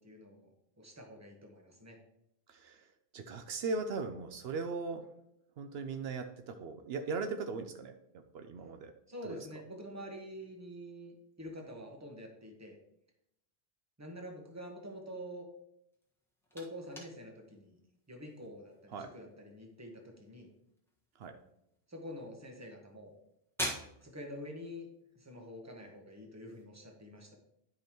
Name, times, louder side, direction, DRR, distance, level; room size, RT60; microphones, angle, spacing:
voice 1, 0.0-2.0 9.1-12.8 14.0-15.5 16.5-17.8 18.1-20.5 21.9-23.1 24.0-24.9 25.1-27.4, equal, 15° right, 2 dB, 1.2 m, -47 dB
voice 2, 2.5-2.9 3.1-5.0 5.6-7.9 8.3-8.9 9.2-9.4 18.9-19.1 21.2-21.4, right 4 dB, 75° right, 6 dB, 0.8 m, -38 dB
sound 1, 15.9-26.7, left 1 dB, ahead, 1.4 m, -48 dB
10.5 x 5.2 x 3.0 m, 0.79 s
omnidirectional pair, 1.1 m